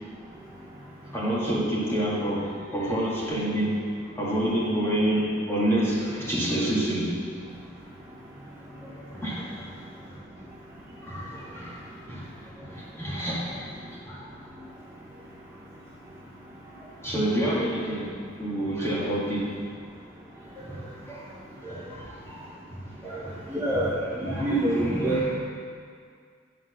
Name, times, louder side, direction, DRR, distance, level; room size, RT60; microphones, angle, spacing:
voice 1, 1.1-3.8 4.2-7.2 9.1-9.7 11.0-12.3 12.6-13.7 14.0-14.3 17.0-18.1 18.4-19.5 20.6-21.3 21.6-23.5 24.2-24.5 24.8-25.3, right 1 dB, 15° left, -7 dB, 1.8 m, -28 dB
voice 2, 23.5-25.3, right 1 dB, 10° right, -9 dB, 1.1 m, -26 dB
10.0 x 4.0 x 6.2 m, 2.1 s
head